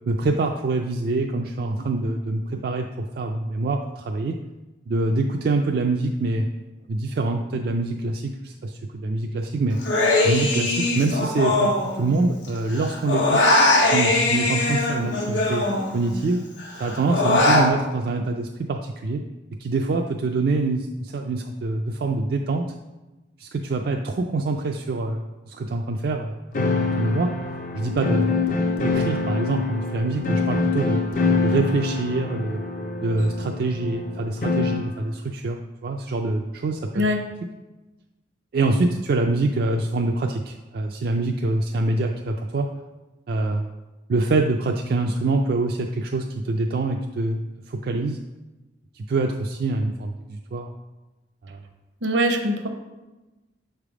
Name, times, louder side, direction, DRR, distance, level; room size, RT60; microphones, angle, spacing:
voice 1, 0.1-4.4 4.9-6.5 6.9-9.8 10.2-13.4 13.9-15.6 15.9-16.4 16.8-19.2 19.6-22.6 23.4-26.4 27.0-27.3 27.7-28.3 28.8-31.0 31.4-32.6 33.0-37.0 38.5-42.7 43.3-43.7 44.1-47.4 47.7-48.2 48.9-50.7 51.4-51.6, right 2 dB, 55° right, 2 dB, 0.3 m, -25 dB
Human voice, 9.8-12.5 12.7-16.2 16.6-17.7, left 2 dB, 85° left, 1.2 m, -21 dB
sound 1, 26.5-34.9, left 4 dB, 45° left, 0.5 m, -25 dB
voice 2, 52.0-52.7, equal, 75° right, 5 dB, 0.7 m, -22 dB
6.6 x 3.4 x 4.8 m, 1.1 s
head